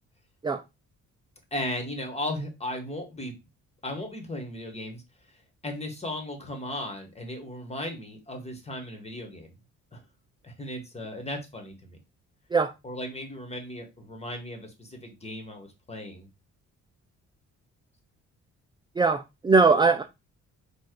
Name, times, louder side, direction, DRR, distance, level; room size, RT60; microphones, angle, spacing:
voice 1, 1.5-3.3 3.8-5.0 5.3-9.5 9.9-10.0 10.4-12.0 12.8-16.3, left 1 dB, 20° left, 1.6 m, -36 dB
voice 2, 19.0-20.0, right 4 dB, 15° right, 0.4 m, -21 dB
4.4 x 2.5 x 4.7 m
cardioid pair, 90°, 30 cm